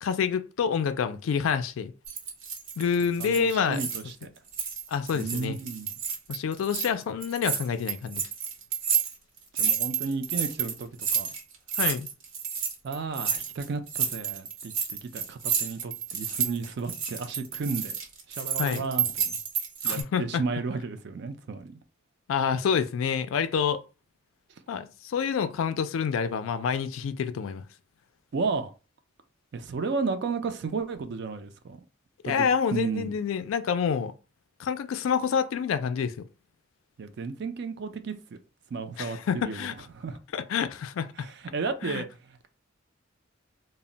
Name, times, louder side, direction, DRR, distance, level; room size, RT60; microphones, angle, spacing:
voice 1, 0.0-1.9 2.8-3.8 4.9-5.6 6.3-8.2 11.8-12.1 18.6-18.8 19.8-20.4 22.3-23.8 24.7-27.6 32.2-34.1 34.6-36.1 39.0-39.7 40.3-41.3 41.8-42.0, left 6 dB, 90° left, 0.3 m, -27 dB
sound 1, 2.1-4.2 4.5-6.9 7.2-20.0, right 7 dB, 80° right, 0.9 m, -30 dB
voice 2, 3.0-4.3 5.1-5.9 9.6-11.3 12.8-17.9 18.3-19.4 19.8-21.8 28.3-28.7 29.5-31.8 32.2-33.2 37.0-38.4 38.7-40.2 41.2-42.5, right 4 dB, 55° right, 0.4 m, -33 dB
2.1 x 2.0 x 3.7 m
head